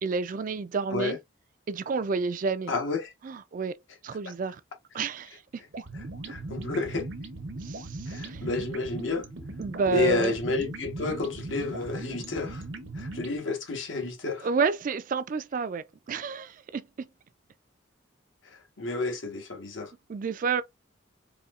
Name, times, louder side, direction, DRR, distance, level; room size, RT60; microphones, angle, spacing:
voice 1, 0.0-1.2 1.7-2.7 3.2-3.7 4.0-4.6 4.9-5.6 7.6-8.5 9.6-10.3 14.4-17.1 20.1-20.6, right 4 dB, 45° right, 0.3 m, -30 dB
voice 2, 2.7-3.1 6.3-7.1 8.1-9.3 9.9-12.6 12.9-14.5 18.5-19.9, left 3 dB, 75° left, 1.2 m, -30 dB
sound 1, 5.7-13.4, right 2 dB, 65° right, 0.7 m, -38 dB
4.2 x 2.7 x 2.4 m
head